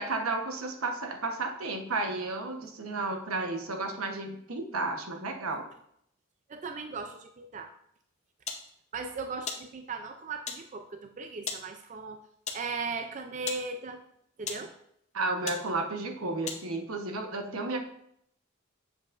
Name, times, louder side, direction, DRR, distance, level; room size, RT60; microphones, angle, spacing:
voice 1, 0.0-5.6 15.1-17.8, right 3 dB, 85° right, 3 dB, 1.0 m, -32 dB
voice 2, 6.5-7.7 8.9-12.2 12.5-14.0 14.4-14.7, right 4 dB, 35° right, 6 dB, 0.4 m, -37 dB
sound 1, 8.5-8.7 9.5-9.7 10.5-10.7 11.5-11.7 12.5-12.7 13.5-13.7 14.4-14.7 15.5-15.7 16.5-16.6, left 6 dB, 30° left, 0.7 m, -36 dB
7.3 x 7.2 x 2.5 m, 0.72 s
head